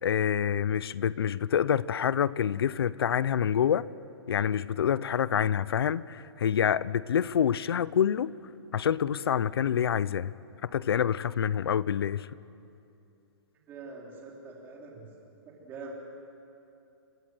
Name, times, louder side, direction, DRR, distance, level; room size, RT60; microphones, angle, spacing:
voice 1, 0.0-3.9 4.3-8.3 8.7-10.3 10.6-12.3, left 8 dB, 65° left, 0.7 m, -27 dB
voice 2, 13.7-15.1 15.4-15.9, right 3 dB, 15° right, 4.1 m, -44 dB
26.5 x 21.0 x 7.8 m
hypercardioid pair, 170°, 14 cm